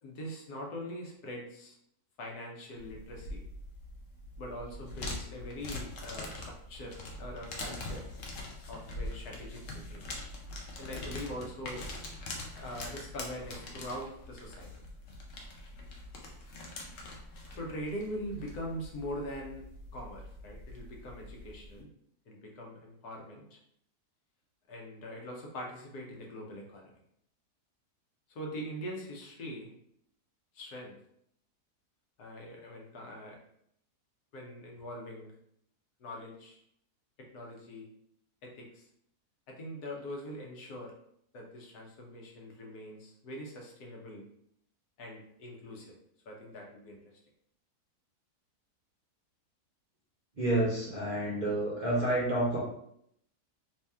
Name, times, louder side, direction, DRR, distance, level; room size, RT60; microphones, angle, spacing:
voice 1, 0.0-1.8 2.2-3.4 4.4-8.0 8.7-10.0 10.8-11.8 12.5-14.7 17.5-19.6 19.9-21.9 22.3-23.6 24.7-26.9 28.3-29.7 30.5-31.0 32.2-33.4 34.3-35.3 36.0-36.6 37.2-37.9 38.4-38.9 39.5-40.9 41.3-44.2 45.0-45.9 46.2-47.0, equal, 80° left, 0 dB, 1.4 m, -42 dB
sound 1, 2.8-21.8, left 2 dB, 60° left, 1.0 m, -43 dB
voice 2, 50.4-52.6, right 1 dB, 40° right, -5 dB, 0.6 m, -29 dB
3.2 x 2.9 x 3.4 m, 0.72 s
omnidirectional pair, 1.7 m